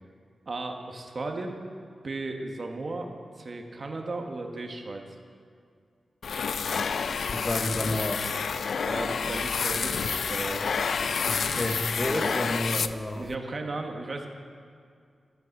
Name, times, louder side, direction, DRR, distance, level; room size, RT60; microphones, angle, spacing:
voice 1, 0.5-1.6 2.0-3.1 3.4-5.0 8.7-10.7 11.9-12.4 13.1-14.3, right 2 dB, 45° right, 3 dB, 1.3 m, -35 dB
sound 1, 6.2-13.4, left 6 dB, 80° left, 0.4 m, -29 dB
voice 2, 7.3-8.3 11.3-13.3, left 1 dB, 25° left, 5 dB, 1.0 m, -30 dB
13.0 x 8.2 x 7.0 m, 2.2 s
wide cardioid pair, 105°, 0 cm